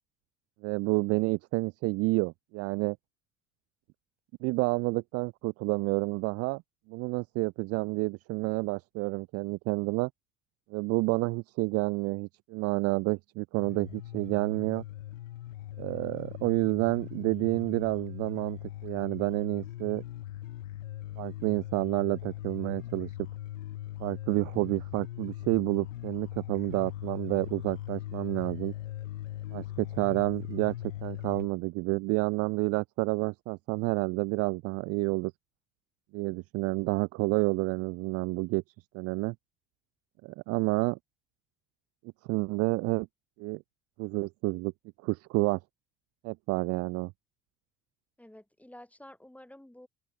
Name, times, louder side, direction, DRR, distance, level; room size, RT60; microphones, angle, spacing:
voice 1, 0.6-3.0 4.4-6.6 6.9-10.1 10.7-14.8 15.8-20.0 21.2-23.1 24.0-28.7 29.5-35.3 36.1-38.6 38.9-39.3 40.2-41.0 42.3-43.1 43.4-43.6 44.0-44.7 45.0-45.6 46.2-47.1, right 25 dB, 40° right, 0.4 m, -29 dB
sound 1, 13.6-31.5, left 14 dB, 75° left, 0.6 m, -40 dB
voice 2, 48.2-49.9, left 1 dB, 5° left, 2.0 m, -51 dB
open air
figure-of-eight pair, 55°, 38 cm